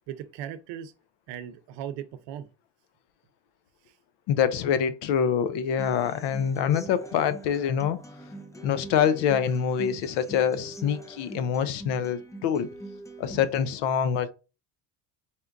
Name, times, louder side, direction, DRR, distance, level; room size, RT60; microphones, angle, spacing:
voice 1, 0.1-0.9 1.3-2.5, right 10 dB, 85° right, 0.7 m, -37 dB
voice 2, 4.3-8.0 8.6-12.7 13.2-14.3, left 8 dB, 80° left, 0.7 m, -25 dB
Human voice / Acoustic guitar, 5.8-13.8, right 2 dB, 10° left, 0.4 m, -43 dB
4.3 x 2.5 x 3.4 m
cardioid pair, 125°, 41 cm